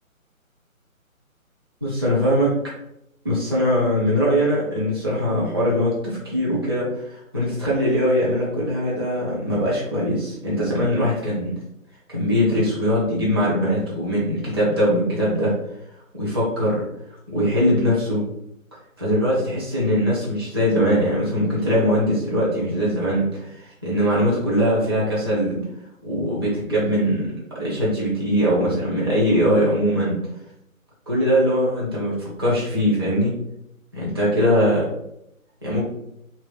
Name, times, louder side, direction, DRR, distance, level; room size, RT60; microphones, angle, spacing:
voice 1, 1.8-2.5 3.2-11.5 12.1-15.5 16.2-16.8 17.3-18.2 19.0-25.6 26.0-30.2 31.1-33.4 33.9-34.9 35.6-35.8, equal, 20° right, -7 dB, 0.6 m, -21 dB
3.1 x 2.5 x 3.9 m, 0.81 s
figure-of-eight pair, 145°, 42 cm